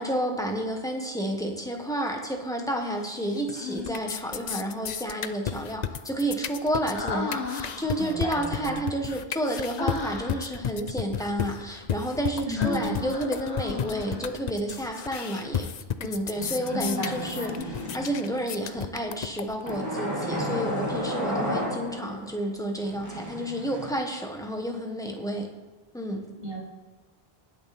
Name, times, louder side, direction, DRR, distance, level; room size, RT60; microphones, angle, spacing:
voice 1, 0.0-15.7 16.0-17.5 17.9-25.5 25.9-26.2, right 1 dB, 5° left, 2 dB, 1.5 m, -30 dB
sound 1, 3.1-3.5 3.8-19.8, left 8 dB, 50° left, 0.5 m, -33 dB
Human voice, 3.6-4.4 6.9-8.3 9.8-10.6 12.6-14.4 16.6-18.2, left 4 dB, 85° left, 1.4 m, -36 dB
voice 2, 7.9-8.9 12.5-13.0 16.7-17.6 20.2-20.6 26.4-26.6, left 1 dB, 60° right, -6 dB, 4.8 m, -34 dB
sound 2, 16.3-18.4 19.7-22.3 22.8-23.9, equal, 15° right, 2.6 m, -33 dB
19.0 x 6.5 x 4.4 m, 1.2 s
omnidirectional pair, 1.1 m